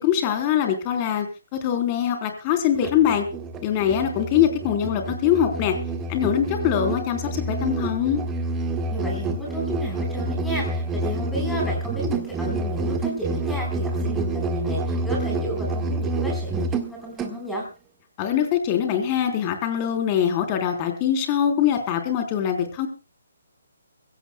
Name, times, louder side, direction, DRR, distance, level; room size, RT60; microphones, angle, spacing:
voice 1, 0.0-3.3 3.6-5.8 6.1-8.2 18.2-22.9, left 9 dB, 25° left, 6 dB, 3.5 m, -23 dB
Musical instrument, 2.7-17.4, right 2 dB, 15° right, 1.6 m, -28 dB
voice 2, 8.9-17.7, equal, 5° left, -1 dB, 4.1 m, -32 dB
23.0 x 16.5 x 2.2 m, 0.32 s
hypercardioid pair, 150°, 0 cm